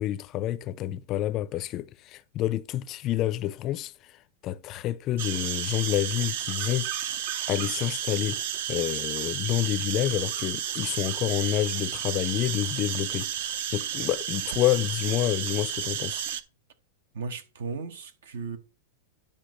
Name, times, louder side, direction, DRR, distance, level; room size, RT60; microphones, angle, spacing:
voice 1, 0.0-6.9 7.5-8.4 8.7-16.2, left 13 dB, 35° left, 0.4 m, -28 dB
sound 1, 5.2-16.4, right 10 dB, 60° right, 0.6 m, -32 dB
voice 2, 17.1-18.6, right 4 dB, 80° right, 1.1 m, -35 dB
10.5 x 5.3 x 3.1 m
supercardioid pair, 150°, 0 cm